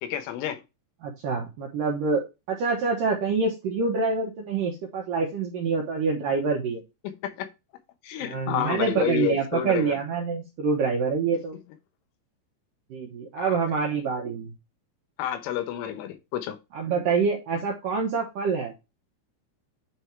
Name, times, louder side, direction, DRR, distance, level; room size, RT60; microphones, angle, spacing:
voice 1, 0.0-0.6 7.0-7.5 8.0-10.0 13.4-13.6 15.2-16.6, left 11 dB, 80° left, 3.5 m, -30 dB
voice 2, 1.0-6.8 8.2-11.6 12.9-14.5 16.7-18.7, right 4 dB, 70° right, 2.1 m, -26 dB
9.6 x 3.6 x 4.5 m
omnidirectional pair, 5.6 m